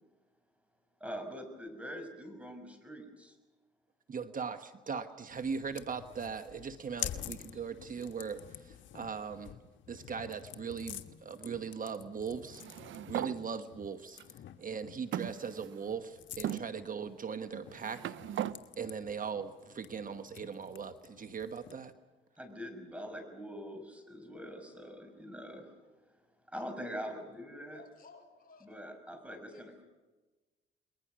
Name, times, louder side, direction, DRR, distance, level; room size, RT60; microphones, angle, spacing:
voice 1, 1.0-3.4 22.4-25.7 26.5-27.8 28.6-29.8, equal, 5° right, 6 dB, 6.1 m, -44 dB
voice 2, 4.1-9.6 9.9-12.6 13.0-14.2 14.6-18.1 18.8-21.9, right 6 dB, 45° right, 9 dB, 1.3 m, -39 dB
sound 1, 5.3-21.9, left 11 dB, 70° left, 1.4 m, -48 dB
sound 2, 12.5-13.4 14.2-14.3 15.1-15.9 16.4-16.6 17.5-18.6, right 11 dB, 75° right, 0.8 m, -38 dB
voice 3, 27.7-28.7 29.2-29.6, left 4 dB, 45° left, 3 dB, 6.0 m, -57 dB
29.5 x 21.5 x 6.3 m, 1.2 s
cardioid pair, 90°, 20 cm